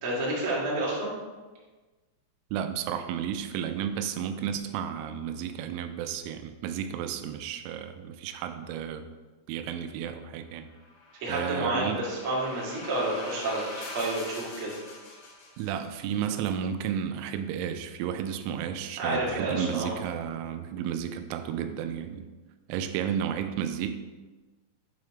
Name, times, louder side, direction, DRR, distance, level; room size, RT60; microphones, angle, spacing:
voice 1, 0.0-1.1 11.2-14.7 19.0-19.9, right 1 dB, 65° right, -6 dB, 1.3 m, -30 dB
voice 2, 2.5-9.1 9.5-10.7 11.3-12.0 15.6-22.3 22.7-24.0, right 9 dB, 90° right, 8 dB, 3.0 m, -32 dB
sound 1, 10.7-16.0, left 2 dB, 65° left, 3.2 m, -43 dB
8.1 x 3.2 x 4.8 m, 1.3 s
omnidirectional pair, 5.4 m